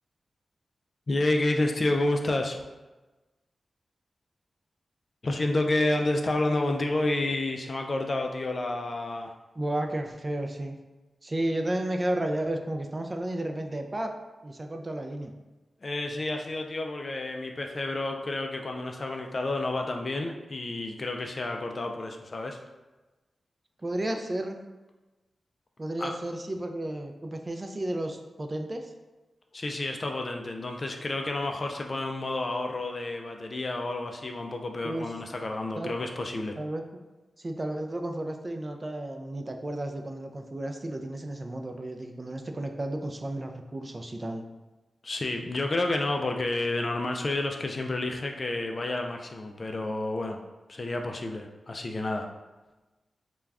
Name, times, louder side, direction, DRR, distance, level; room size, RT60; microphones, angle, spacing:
voice 1, 1.1-2.6 5.2-9.3 15.8-22.6 26.0-26.1 29.5-36.6 45.0-50.4 50.7-52.3, left 2 dB, 50° left, 3 dB, 0.3 m, -30 dB
voice 2, 9.6-10.8 11.2-14.1 14.4-15.3 23.8-24.6 25.8-28.9 34.8-35.1 35.8-35.9 36.6-36.8 37.4-44.4, right 1 dB, 35° right, 4 dB, 0.3 m, -32 dB
2.3 x 2.2 x 3.3 m, 1.2 s
cardioid pair, 45°, 0 cm